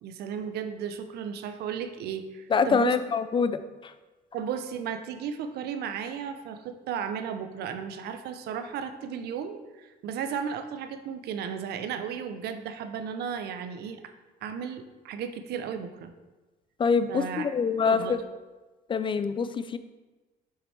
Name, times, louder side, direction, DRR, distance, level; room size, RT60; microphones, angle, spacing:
voice 1, 0.0-3.0 4.3-14.0 14.4-16.1 17.1-17.5 17.8-18.2, right 7 dB, 70° right, 8 dB, 0.7 m, -34 dB
voice 2, 2.5-3.9 16.8-18.2 18.9-19.8, left 5 dB, 30° left, 11 dB, 0.4 m, -25 dB
7.2 x 5.9 x 3.3 m, 1.2 s
cardioid pair, 110°, 17 cm